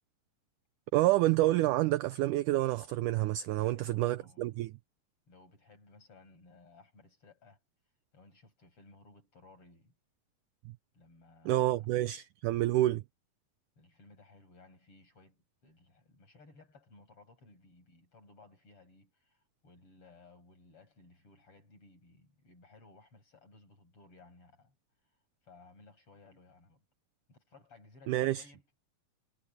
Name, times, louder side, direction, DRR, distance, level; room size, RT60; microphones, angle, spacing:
voice 1, 0.9-4.7 11.5-13.0 28.1-28.4, right 16 dB, 80° right, 1.8 m, -28 dB
voice 2, 3.5-4.5 5.3-7.6 8.1-10.0 10.9-11.9 13.8-24.8 25.4-26.8 27.3-28.6, left 3 dB, 35° left, 8.1 m, -59 dB
omnidirectional pair, 4.2 m